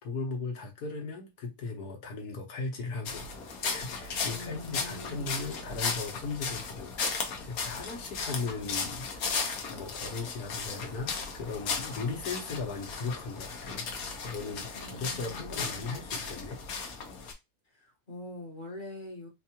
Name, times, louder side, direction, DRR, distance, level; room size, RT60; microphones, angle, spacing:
voice 1, 0.0-3.3 3.7-9.4 9.7-16.6, left 4 dB, 90° left, 1.6 m, -37 dB
Footsteps Dry Leaves C, 3.1-17.3, left 5 dB, 70° left, 1.3 m, -36 dB
voice 2, 4.3-5.4 14.7-15.9 17.6-19.3, left 1 dB, 35° left, 1.2 m, -44 dB
4.5 x 2.3 x 2.9 m
omnidirectional pair, 1.6 m